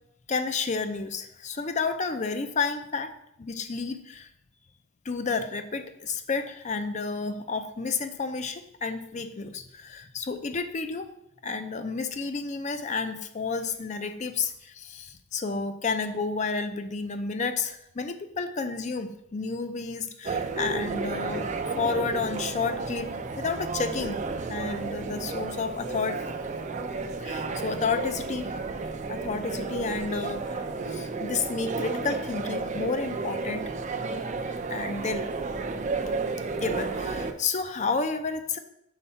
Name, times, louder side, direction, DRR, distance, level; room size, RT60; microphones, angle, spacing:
voice 1, 0.3-3.1 3.4-4.3 5.0-11.1 11.4-21.5 21.8-24.2 24.5-26.3 27.2-28.5 29.1-33.6 34.7-35.3 36.6-38.6, left 4 dB, 35° left, 9 dB, 0.5 m, -31 dB
sound 1, 20.2-37.3, right 4 dB, 35° right, 0.4 m, -32 dB
5.6 x 4.7 x 5.5 m, 0.79 s
head